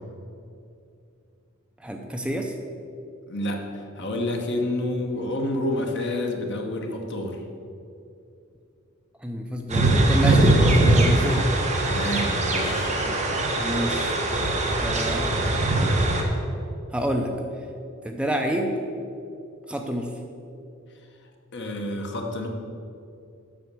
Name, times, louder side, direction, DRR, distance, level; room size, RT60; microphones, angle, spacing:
voice 1, 1.8-2.5 9.2-11.5 13.1-14.1 14.8-15.4 16.9-17.3 18.0-18.7 19.7-20.1, right 1 dB, 5° right, 3 dB, 0.5 m, -28 dB
voice 2, 3.3-7.4 11.9-12.9 21.5-22.5, left 1 dB, 55° left, 2 dB, 1.1 m, -29 dB
sound 1, 9.7-16.2, right 2 dB, 35° right, 1.1 m, -21 dB
7.7 x 5.8 x 6.7 m, 2.6 s
head